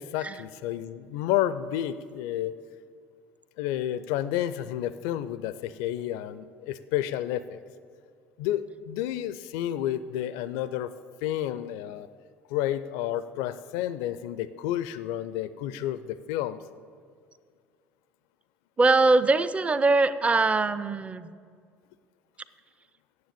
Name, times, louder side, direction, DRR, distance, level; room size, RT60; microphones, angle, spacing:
voice 1, 0.0-2.6 3.6-7.6 8.4-10.9 11.2-12.1 12.5-16.6, left 12 dB, 60° left, 15 dB, 0.4 m, -30 dB
voice 2, 18.8-21.3, right 3 dB, 20° right, 15 dB, 0.5 m, -22 dB
9.5 x 7.6 x 8.7 m, 2.1 s
figure-of-eight pair, 55°, 7 cm